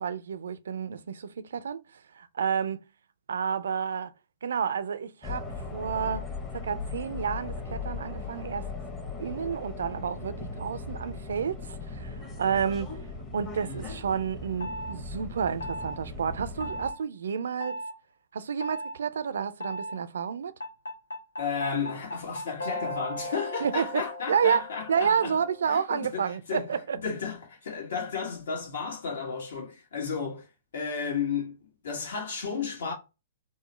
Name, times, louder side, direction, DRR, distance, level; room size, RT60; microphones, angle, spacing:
voice 1, 0.0-1.8 2.2-2.8 3.3-4.1 4.4-6.3 6.5-8.7 9.2-13.0 13.3-17.8 18.3-20.5 23.6-24.0 24.3-24.6 24.9-27.0, right 7 dB, 70° right, 0.3 m, -30 dB
sound 1, 5.2-16.9, left 3 dB, 20° left, 0.9 m, -38 dB
voice 2, 13.6-13.9 21.4-25.3 25.7-26.7 27.0-30.5 30.7-31.6 31.8-32.9, left 5 dB, 65° left, 1.4 m, -33 dB
sound 2, 14.6-15.0 15.6-16.0 16.6-17.0 17.6-17.9 18.6-19.0 19.6-20.0 20.6-25.7, equal, 85° left, 0.9 m, -37 dB
3.9 x 2.1 x 3.0 m
figure-of-eight pair, 115°, 0 cm